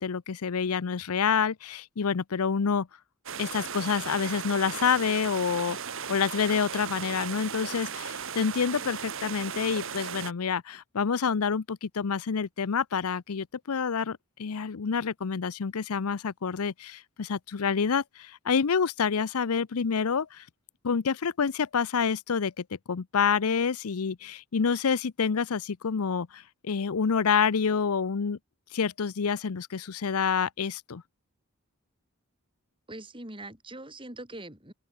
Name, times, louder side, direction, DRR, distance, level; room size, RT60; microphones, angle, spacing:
voice 1, 0.0-2.9 3.4-5.8 6.1-20.4 20.8-28.4 28.7-31.0, left 6 dB, 80° left, 0.6 m, -28 dB
sound 1, 3.3-10.3, right 7 dB, 60° right, 1.7 m, -36 dB
voice 2, 32.9-34.7, right 1 dB, 25° right, 4.5 m, -42 dB
head